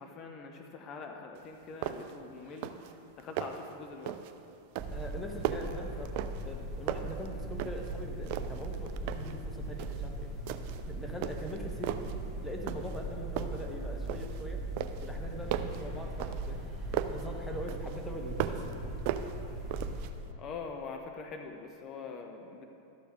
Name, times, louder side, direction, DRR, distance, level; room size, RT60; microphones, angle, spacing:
voice 1, 0.0-2.8 3.2-4.2 20.3-22.7, left 4 dB, 35° left, 4 dB, 0.7 m, -44 dB
sound 1, 1.4-1.5 1.8-2.2 2.5-2.9 3.2-3.7 4.1-4.4 4.7-6.6 6.9-7.9 8.3-9.4 9.8-10.1 10.5-10.9 11.2-12.2 12.7-13.1 13.4-14.4 14.8-17.3 17.7-18.7 19.1-20.1, right 11 dB, 45° right, 0.4 m, -37 dB
sound 2, 4.8-20.1, right 1 dB, 10° right, 1.5 m, -39 dB
voice 2, 4.9-6.1 6.4-10.3 10.9-12.1 12.4-14.6 15.0-16.6 17.1-18.9, equal, 10° left, 1 dB, 1.2 m, -42 dB
12.0 x 7.0 x 3.7 m, 2.6 s
figure-of-eight pair, 90°, 0 cm